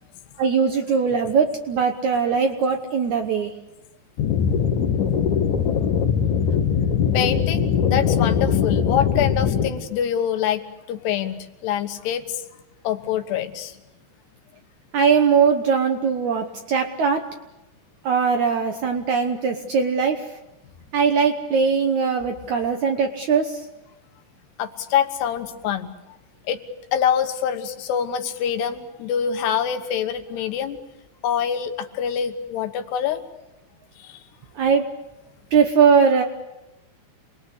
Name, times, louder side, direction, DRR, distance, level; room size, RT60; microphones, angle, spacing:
voice 1, 0.4-3.5 14.9-17.2 18.0-20.3 20.9-23.7 34.6-34.9 35.5-36.2, right 6 dB, 65° right, 5 dB, 1.9 m, -20 dB
sound 1, 4.2-9.7, left 7 dB, 55° left, 2.6 m, -21 dB
voice 2, 7.1-10.6 10.9-12.4 12.8-13.8 24.6-25.9 26.5-26.6 26.9-30.8 31.2-33.2 34.0-34.2, left 8 dB, 80° left, 8 dB, 3.4 m, -25 dB
28.0 x 21.5 x 8.4 m, 0.98 s
omnidirectional pair, 4.8 m